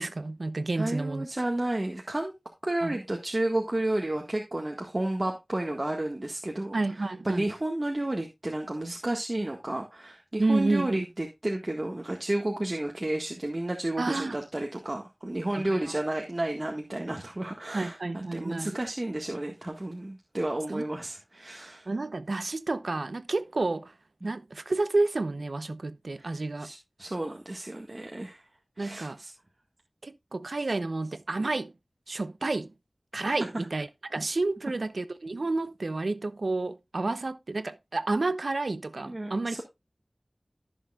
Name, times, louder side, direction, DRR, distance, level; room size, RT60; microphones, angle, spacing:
voice 1, 0.0-1.3 2.8-3.0 6.7-7.5 10.4-11.0 14.0-14.4 15.7-15.9 17.7-18.8 20.7-20.8 21.9-23.9 24.2-26.7 28.8-29.2 30.0-31.7 32.1-32.7 33.1-39.6, right 2 dB, 85° right, 0.7 m, -30 dB
voice 2, 0.7-2.3 2.6-21.9 26.2-28.4 28.8-29.3 39.1-39.6, right 1 dB, 45° right, 1.7 m, -32 dB
15.0 x 6.5 x 2.4 m
wide cardioid pair, 45°, 0 cm